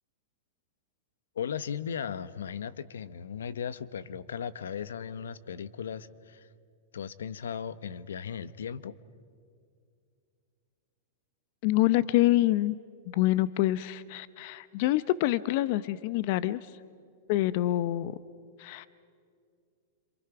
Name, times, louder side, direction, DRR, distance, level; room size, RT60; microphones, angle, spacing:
voice 1, 1.3-6.5 6.9-9.0, left 7 dB, 85° left, 16 dB, 0.9 m, -37 dB
voice 2, 11.6-12.8 13.1-16.8 17.3-18.1 18.6-18.9, left 16 dB, 55° left, 16 dB, 0.7 m, -26 dB
27.0 x 27.0 x 5.9 m, 2.3 s
hypercardioid pair, 120°, 0 cm